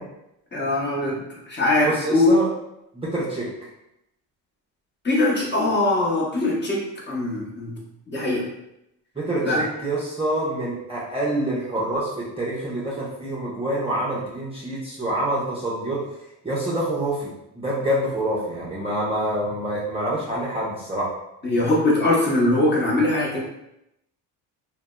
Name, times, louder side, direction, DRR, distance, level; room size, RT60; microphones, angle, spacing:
voice 1, 0.5-2.3 5.0-7.8 8.1-8.5 9.4-9.6 21.4-23.4, left 2 dB, 25° left, -4 dB, 0.9 m, -22 dB
voice 2, 1.8-2.5 2.9-3.7 9.2-16.0 16.4-21.1, right 1 dB, 15° right, -7 dB, 0.6 m, -26 dB
2.6 x 2.1 x 2.2 m, 0.84 s
supercardioid pair, 70°, 46 cm